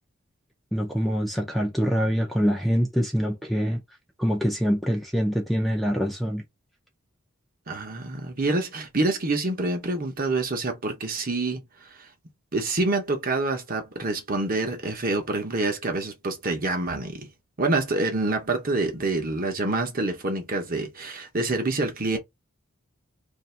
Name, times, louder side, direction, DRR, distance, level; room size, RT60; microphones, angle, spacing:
voice 1, 0.7-3.8 4.2-6.4, equal, ahead, 0.6 m, -24 dB
voice 2, 7.7-12.1 12.5-17.3 17.6-22.2, right 2 dB, 40° right, 1.0 m, -27 dB
3.0 x 2.7 x 4.4 m
head